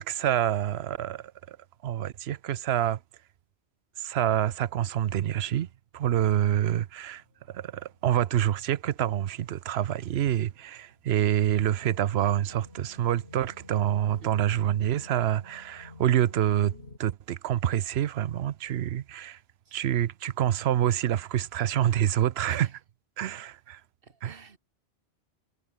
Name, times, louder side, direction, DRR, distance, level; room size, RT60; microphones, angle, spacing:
voice 1, 0.0-1.6 1.8-3.0 4.0-5.7 5.9-16.7 17.0-19.4 19.7-22.7 23.2-23.8 24.2-24.4, right 11 dB, 80° right, 0.9 m, -27 dB
sound 1, 7.0-17.0, left 2 dB, 85° left, 4.2 m, -53 dB
voice 2, 14.1-14.5 19.7-19.8 22.5-22.7 24.0-24.6, right 5 dB, 60° right, 1.8 m, -48 dB
omnidirectional pair, 1.1 m